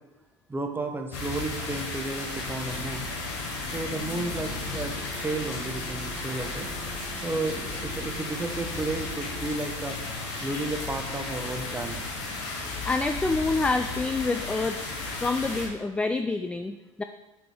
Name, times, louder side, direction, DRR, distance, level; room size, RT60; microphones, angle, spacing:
voice 1, 0.5-3.1 3.7-6.7 7.2-10.0 10.4-12.0, right 2 dB, 15° right, 5 dB, 0.9 m, -33 dB
sound 1, 1.1-15.7, left 3 dB, 60° left, 2.1 m, -34 dB
sound 2, 2.2-12.0, left 6 dB, 75° left, 1.7 m, -49 dB
sound 3, 4.2-9.4, right 3 dB, 90° right, 1.3 m, -45 dB
voice 2, 12.8-14.8 15.2-17.0, left 3 dB, 5° left, 8 dB, 0.3 m, -27 dB
8.9 x 6.3 x 3.3 m, 1.1 s
hypercardioid pair, 75°, 16 cm